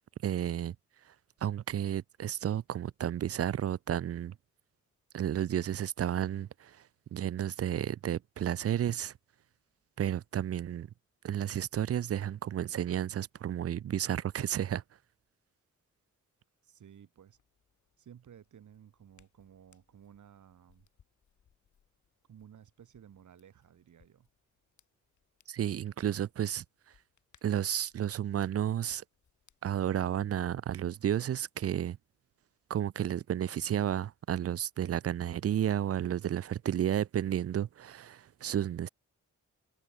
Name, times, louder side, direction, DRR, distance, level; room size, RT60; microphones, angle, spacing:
voice 1, 0.2-0.7 1.4-4.3 5.1-6.8 7.1-9.1 10.0-10.9 11.2-14.8 25.5-26.6 27.4-29.0 29.6-32.0 32.7-38.9, right 10 dB, 50° right, 0.5 m, -32 dB
voice 2, 16.6-17.4 18.0-20.9 22.3-24.3, right 9 dB, 75° right, 2.6 m, -56 dB
Hands, 17.2-31.3, left 8 dB, 70° left, 7.6 m, -72 dB
wide cardioid pair, 110°, 31 cm